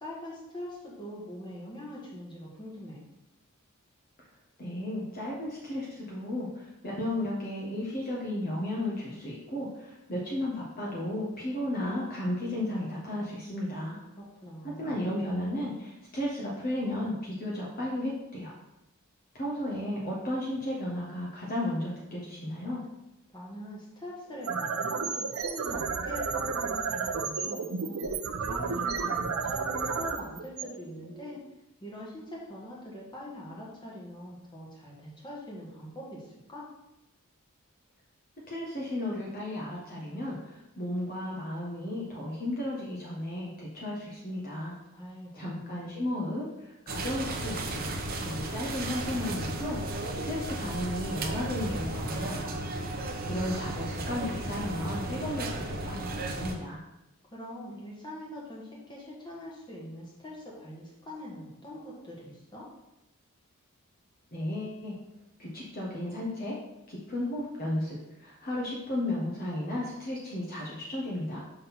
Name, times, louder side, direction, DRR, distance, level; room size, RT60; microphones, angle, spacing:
voice 1, 0.0-3.0 14.2-15.0 23.3-28.0 28.4-31.4 31.8-36.7 44.9-45.6 57.3-62.7, equal, 20° left, -5 dB, 1.7 m, -43 dB
voice 2, 4.6-14.0 14.6-18.5 19.3-22.8 38.5-44.7 45.3-47.9 48.2-52.6 53.3-56.8 64.3-65.0 65.4-66.6 66.9-71.4, left 1 dB, 40° left, -4 dB, 1.3 m, -34 dB
sound 1, 24.3-31.4, right 5 dB, 75° right, 0.7 m, -32 dB
sound 2, 46.9-56.5, right 1 dB, 40° right, 0.8 m, -34 dB
5.9 x 3.9 x 5.8 m, 0.91 s
head